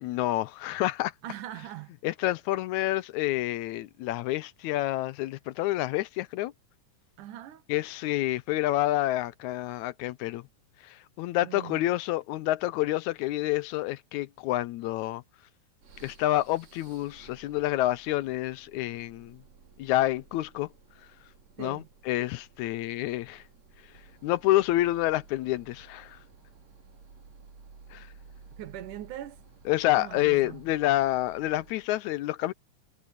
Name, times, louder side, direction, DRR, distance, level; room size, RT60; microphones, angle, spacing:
voice 1, 0.0-1.1 2.0-6.5 7.7-10.4 10.8-15.2 16.0-19.4 19.8-20.7 21.6-23.4 24.2-26.2 27.9-28.1 29.7-32.5, left 16 dB, 80° left, 1.9 m, -28 dB
voice 2, 1.2-1.9 7.2-7.6 11.4-11.8 21.6-21.9 28.6-29.4 29.9-30.6, right 12 dB, 90° right, 2.7 m, -41 dB
sound 1, 15.8-32.0, right 4 dB, 60° right, 4.6 m, -55 dB
omnidirectional pair, 3.5 m